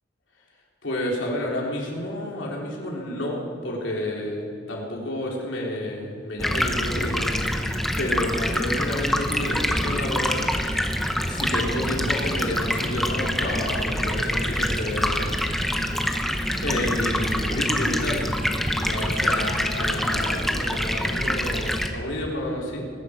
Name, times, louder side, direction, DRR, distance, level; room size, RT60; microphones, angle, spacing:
voice 1, 0.8-10.4 11.3-15.3 15.7-16.1 16.6-22.9, left 1 dB, 85° left, -2 dB, 3.4 m, -30 dB
Stream, 6.4-21.9, equal, ahead, 0.9 m, -25 dB
20.5 x 11.5 x 5.0 m, 2.3 s
head